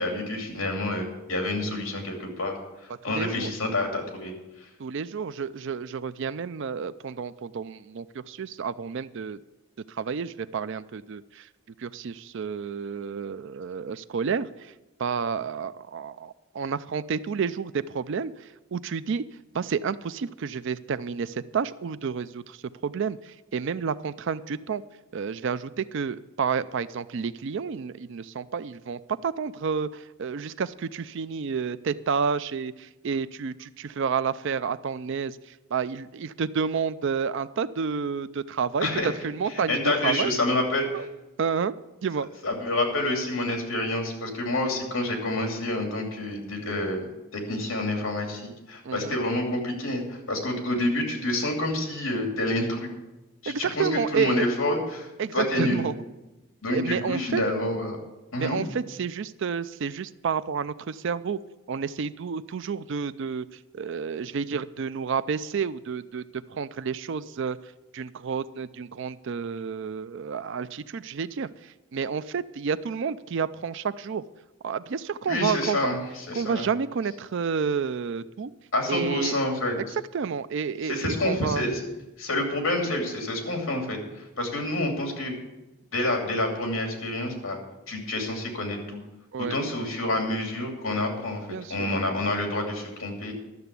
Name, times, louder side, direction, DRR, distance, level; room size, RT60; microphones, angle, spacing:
voice 1, 0.0-4.7 38.8-39.1 39.7-41.1 42.4-52.9 53.4-55.8 56.6-58.0 58.3-58.6 75.3-76.7 78.7-79.7 80.8-81.8 82.2-85.3 85.9-87.6 87.9-89.0 89.4-93.3, left 1 dB, 65° left, 2 dB, 2.8 m, -28 dB
voice 2, 3.1-3.5 4.8-9.4 9.9-11.5 11.8-14.7 15.0-19.2 19.5-24.8 25.1-38.9 39.2-40.3 40.9-41.1 41.4-41.8 42.0-42.3 48.8-49.2 53.5-54.5 55.2-55.9 56.7-57.4 58.4-61.4 61.7-63.5 63.7-66.2 66.5-67.6 67.9-74.2 74.6-75.8 76.4-78.5 78.9-79.4 79.8-79.9 80.1-81.6 89.3-89.6 91.5-91.9, right 6 dB, 55° right, 15 dB, 0.4 m, -30 dB
12.0 x 6.9 x 8.2 m, 1.0 s
head